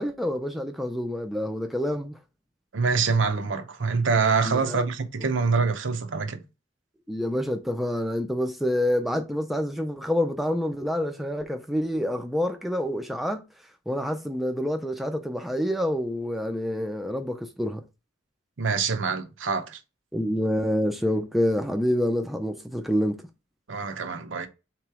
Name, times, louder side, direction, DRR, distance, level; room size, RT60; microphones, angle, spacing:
voice 1, 0.0-2.2 4.5-4.9 7.1-13.5 13.9-17.8 20.1-23.3, equal, ahead, 0.4 m, -27 dB
voice 2, 2.7-6.4 18.6-19.8 23.7-24.5, right 5 dB, 80° right, 0.7 m, -25 dB
3.8 x 3.0 x 4.6 m
head